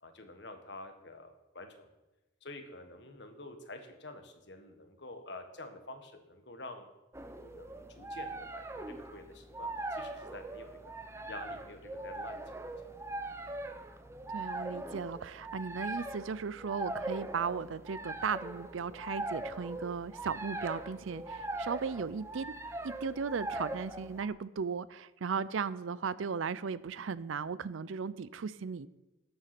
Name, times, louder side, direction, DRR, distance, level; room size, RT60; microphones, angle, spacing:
voice 1, 0.0-1.9 2.4-6.9 7.4-10.7 11.3-12.4, left 2 dB, 60° left, 6 dB, 1.4 m, -48 dB
sound 1, 7.1-24.3, right 2 dB, 15° right, 0.6 m, -41 dB
voice 2, 14.3-22.5 22.8-28.9, right 5 dB, 80° right, 18 dB, 0.5 m, -36 dB
12.5 x 7.9 x 6.0 m, 1.0 s
head